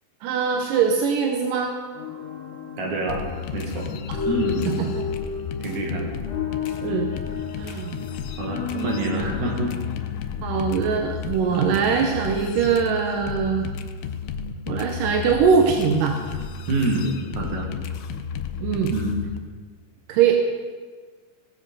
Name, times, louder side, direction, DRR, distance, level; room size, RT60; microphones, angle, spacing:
voice 1, 0.2-1.7 4.8-5.0 6.8-7.1 7.6-8.1 8.7-9.3 10.4-13.7 14.7-16.2 18.6-18.9 20.1-20.3, right 6 dB, 90° right, 3 dB, 2.6 m, -22 dB
sound 1, 1.9-12.0, left 8 dB, 60° left, 2.4 m, -33 dB
voice 2, 2.8-3.3 3.5-3.9 4.3-4.8 5.6-6.1 8.4-9.7 11.5-11.8 16.7-17.1 17.4-17.7 18.9-19.2, right 2 dB, 65° right, -1 dB, 3.5 m, -27 dB
sound 2, 3.1-19.4, left 7 dB, 85° left, 2.3 m, -33 dB
18.0 x 7.5 x 5.5 m, 1.5 s
omnidirectional pair, 3.7 m